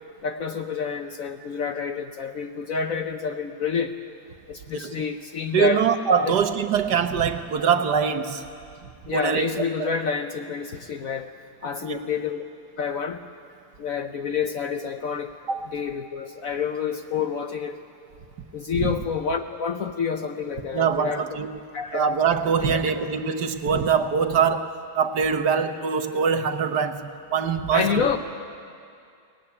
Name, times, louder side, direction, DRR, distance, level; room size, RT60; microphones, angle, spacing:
voice 1, 0.2-3.9 4.5-5.8 6.3-6.4 9.1-11.3 11.6-12.4 12.8-13.2 13.8-15.3 15.7-17.8 18.5-21.2 21.7-22.1 22.7-22.8 27.7-28.2, left 6 dB, 60° left, 7 dB, 1.0 m, -28 dB
voice 2, 5.5-8.4 8.8-9.9 11.8-12.0 15.5-15.7 18.7-18.9 20.7-21.5 21.9-28.2, right 6 dB, 65° right, 8 dB, 1.5 m, -23 dB
23.0 x 18.5 x 9.8 m, 2.4 s
omnidirectional pair, 2.1 m